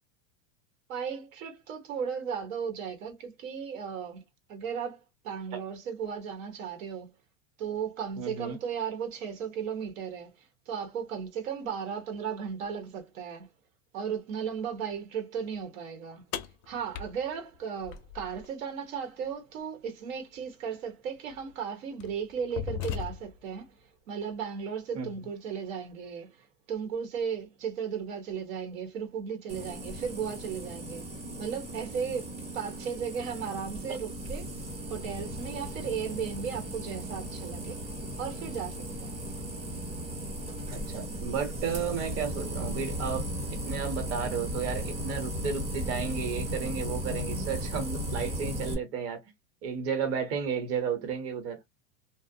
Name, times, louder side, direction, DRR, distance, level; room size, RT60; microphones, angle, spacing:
voice 1, 0.9-4.2 4.5-7.1 7.6-13.5 13.9-16.2 16.7-23.8 24.1-31.1 31.4-34.5 34.9-37.8 38.2-39.2, right 7 dB, 90° right, 1.0 m, -35 dB
voice 2, 8.2-8.6 24.9-25.1 40.7-43.3 43.7-49.2 49.6-51.6, right 6 dB, 35° right, 0.9 m, -33 dB
sound 1, 16.3-18.5 20.4-20.5 21.3-21.5 22.0-23.5, left 9 dB, 40° left, 0.4 m, -37 dB
sound 2, 29.5-48.8, equal, 15° right, 0.5 m, -36 dB
2.4 x 2.0 x 2.6 m
supercardioid pair, 140°, 39 cm